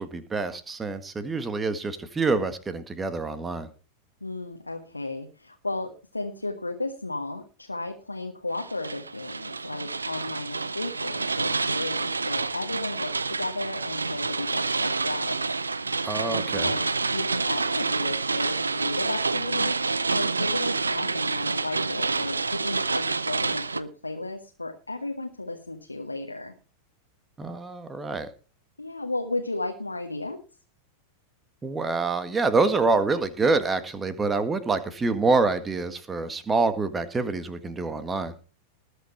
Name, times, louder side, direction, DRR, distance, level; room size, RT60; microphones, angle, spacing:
voice 1, 0.0-3.7 16.0-16.7 27.4-28.3 31.6-38.3, right 3 dB, 15° right, 11 dB, 1.7 m, -26 dB
voice 2, 4.2-15.4 16.2-16.8 17.1-19.7 20.1-26.5 28.8-30.4, left 2 dB, 85° left, 3 dB, 1.4 m, -34 dB
sound 1, 8.5-23.8, right 4 dB, 80° right, 0.6 m, -28 dB
20.0 x 6.7 x 4.5 m, 0.35 s
figure-of-eight pair, 90°, 0 cm